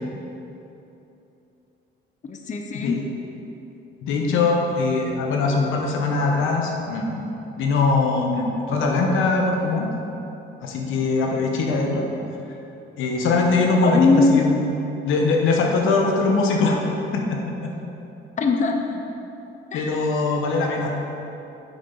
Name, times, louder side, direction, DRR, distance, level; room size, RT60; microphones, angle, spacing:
voice 1, 2.2-3.0 13.8-14.5 18.4-19.0 19.7-20.1, left 4 dB, 40° left, 4 dB, 0.6 m, -21 dB
voice 2, 2.7-3.0 4.0-7.2 7.5-9.9 10.6-12.0 13.0-14.5 15.0-16.8 17.1-17.7 19.7-20.9, left 3 dB, 90° left, 1 dB, 1.0 m, -21 dB
8.3 x 6.1 x 3.9 m, 2.9 s
cardioid pair, 90°, 20 cm